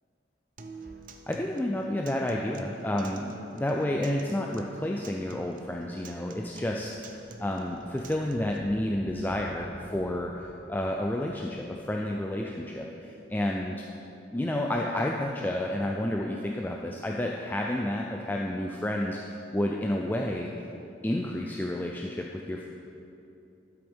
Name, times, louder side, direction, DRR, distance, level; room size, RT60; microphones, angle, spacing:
Acoustic guitar, 0.6-8.6, right 3 dB, 45° right, 0.6 m, -47 dB
voice 1, 1.3-6.9 7.4-13.8 14.3-20.5 21.0-22.7, left 1 dB, 10° left, 0 dB, 0.3 m, -30 dB
sound 1, 6.0-13.5 13.7-13.8, right 1 dB, 65° right, 1.3 m, -52 dB
12.5 x 7.8 x 3.6 m, 2.8 s
head